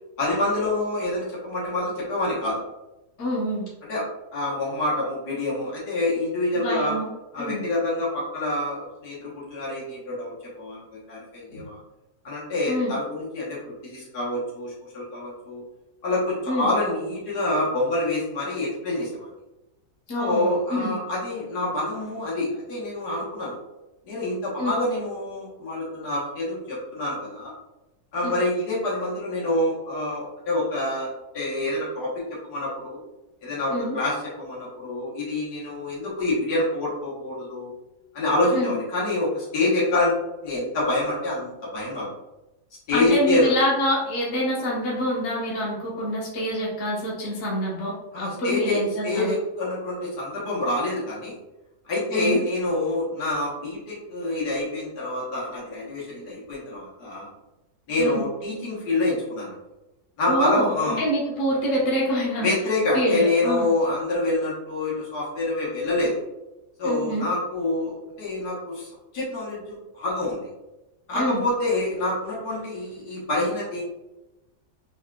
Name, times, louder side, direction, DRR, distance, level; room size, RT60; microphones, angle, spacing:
voice 1, 0.2-2.6 3.9-4.0 4.3-7.0 7.3-11.8 12.2-15.6 16.0-19.3 20.2-23.6 24.1-27.5 28.1-32.2 32.5-33.0 33.4-37.7 38.1-40.1 40.4-42.1 42.9-43.5 48.1-51.4 51.9-57.3 57.9-59.5 60.2-61.0 62.4-66.2 66.8-68.9 69.1-70.5 71.1-73.8, left 2 dB, 80° left, -7 dB, 1.8 m, -26 dB
voice 2, 3.2-3.6 6.5-7.1 7.4-7.6 11.5-11.6 12.7-12.9 16.5-16.7 20.1-20.5 20.8-20.9 24.6-24.7 28.2-28.3 33.7-33.9 38.5-38.7 42.9-49.3 52.1-52.4 58.0-58.2 60.3-62.5 62.9-63.7 66.8-67.2 71.1-71.4, equal, 60° left, -5 dB, 1.3 m, -26 dB
3.8 x 3.4 x 2.3 m, 0.98 s
omnidirectional pair, 1.7 m